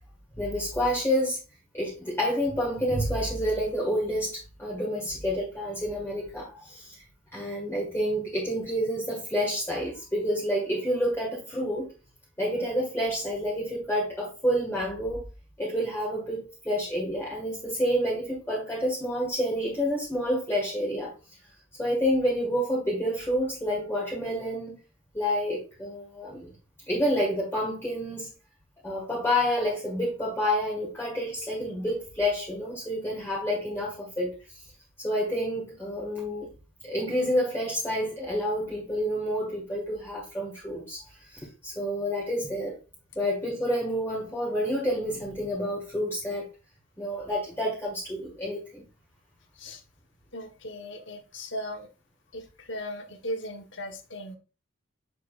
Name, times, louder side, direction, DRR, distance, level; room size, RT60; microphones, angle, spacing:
voice 1, 0.4-1.4 1.7-4.3 4.6-6.9 7.3-11.9 12.4-15.2 15.6-21.1 21.8-24.7 25.1-26.5 26.9-28.3 28.8-34.6 35.0-36.5 36.8-42.7 43.1-46.4 47.0-48.8, equal, 10° left, 1.7 m, -29 dB
voice 2, 50.3-51.9 52.3-54.4, equal, 55° left, 1.2 m, -37 dB
7.0 x 6.0 x 2.4 m
head